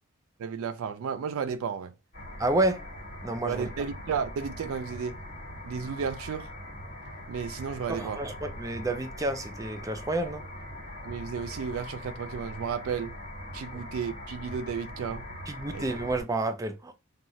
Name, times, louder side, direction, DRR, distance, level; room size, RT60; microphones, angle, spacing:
voice 1, 0.4-1.9 3.4-5.2 5.6-6.5 7.3-8.2 11.0-13.1 13.5-15.2 15.7-15.8, right 6 dB, 85° right, 0.4 m, -33 dB
sound 1, 2.1-16.2, left 1 dB, 50° left, 1.7 m, -42 dB
voice 2, 2.4-2.8 3.2-3.6 7.9-10.4 15.5-16.9, right 2 dB, 15° right, 0.4 m, -29 dB
3.0 x 2.3 x 2.6 m
head